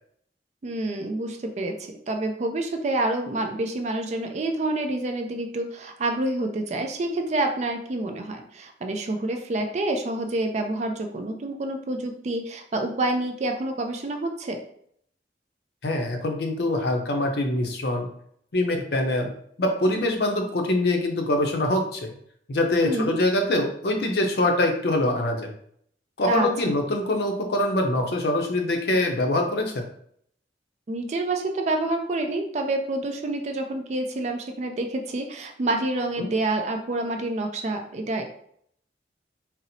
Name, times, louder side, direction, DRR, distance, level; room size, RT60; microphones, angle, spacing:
voice 1, 0.6-1.7 2.1-14.6 22.8-23.2 26.3-26.5 30.9-38.2, right 2 dB, 40° right, 4 dB, 0.4 m, -28 dB
voice 2, 15.8-18.1 18.5-19.3 19.6-22.1 22.5-25.5 26.2-29.8 36.2-36.3, left 1 dB, 65° left, 3 dB, 0.5 m, -24 dB
4.1 x 2.0 x 2.6 m, 0.67 s
head